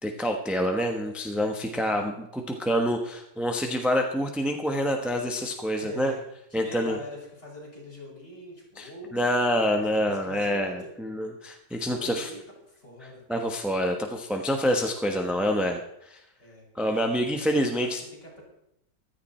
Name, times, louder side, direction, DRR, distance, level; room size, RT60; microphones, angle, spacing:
voice 1, 0.0-6.1 6.5-7.0 8.8-12.3 13.3-16.2 16.7-18.0, equal, ahead, 3 dB, 0.9 m, -27 dB
voice 2, 5.4-6.2 6.5-10.9 11.8-13.2 16.4-16.6 17.3-18.4, left 1 dB, 40° left, -5 dB, 7.1 m, -44 dB
15.0 x 13.5 x 4.4 m, 0.80 s
omnidirectional pair, 1.9 m